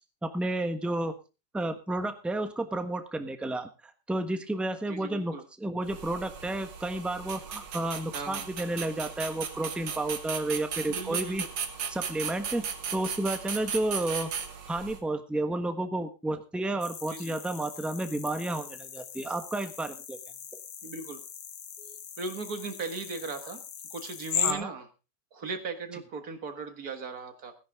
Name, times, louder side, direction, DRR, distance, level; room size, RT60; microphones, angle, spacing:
voice 1, 0.2-1.1 1.5-3.7 4.1-11.4 11.9-12.7 12.9-14.3 14.7-20.2 24.4-24.7, right 2 dB, ahead, 8 dB, 0.9 m, -31 dB
voice 2, 4.9-5.4 8.1-8.5 10.9-11.5 17.1-17.4 20.8-21.2 21.8-23.6 23.9-24.9 25.3-27.5, right 4 dB, 55° right, 8 dB, 2.0 m, -38 dB
sound 1, 5.8-15.0, right 6 dB, 85° right, 2.2 m, -37 dB
sound 2, 16.8-24.5, left 9 dB, 85° left, 1.9 m, -38 dB
17.0 x 10.5 x 3.6 m, 0.30 s
omnidirectional pair, 1.9 m